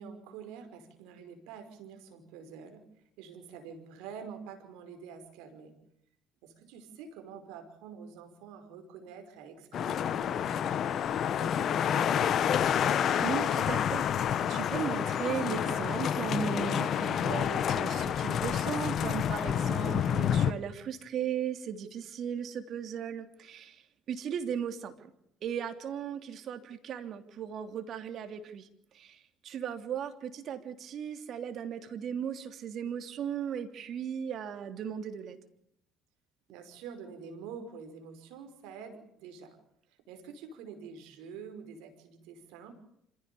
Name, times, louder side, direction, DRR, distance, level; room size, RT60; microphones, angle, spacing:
voice 1, 0.0-2.8 3.2-5.8 6.4-10.8 11.2-12.4 36.5-39.6 40.1-42.7, right 6 dB, 75° right, 7 dB, 5.3 m, -47 dB
sound 1, 9.7-20.5, left 9 dB, 55° left, 1.3 m, -29 dB
voice 2, 13.2-25.1 25.4-28.7 28.9-35.4, right 8 dB, 55° right, 8 dB, 3.2 m, -37 dB
27.5 x 16.5 x 7.1 m, 0.78 s
hypercardioid pair, 70°, 0 cm